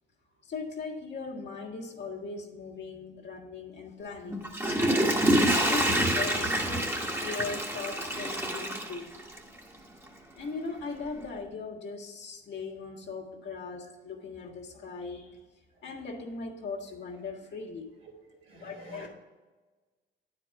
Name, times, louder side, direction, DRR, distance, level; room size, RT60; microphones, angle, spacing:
voice 1, 0.4-4.5 5.5-9.1 10.3-15.4 15.8-17.9 18.5-19.1, left 4 dB, 60° left, -1 dB, 1.7 m, -39 dB
Water / Toilet flush, 4.3-9.6 10.1-10.2, right 1 dB, 10° right, 1.2 m, -27 dB
voice 2, 18.5-19.1, right 3 dB, 80° right, -4 dB, 2.2 m, -48 dB
9.4 x 4.9 x 4.6 m, 1.3 s
cardioid pair, 90°, 20 cm